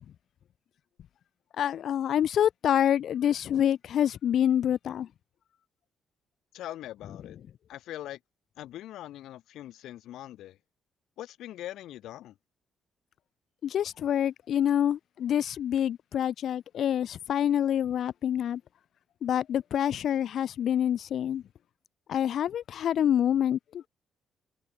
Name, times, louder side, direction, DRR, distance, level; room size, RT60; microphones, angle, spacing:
voice 1, 1.6-5.1 13.6-18.6 19.2-21.4 22.1-23.9, left 10 dB, 65° left, 0.8 m, -27 dB
voice 2, 6.5-7.4 7.7-8.2 8.6-10.6 11.2-12.3, left 13 dB, 85° left, 3.5 m, -42 dB
cardioid pair, 90°, 0 cm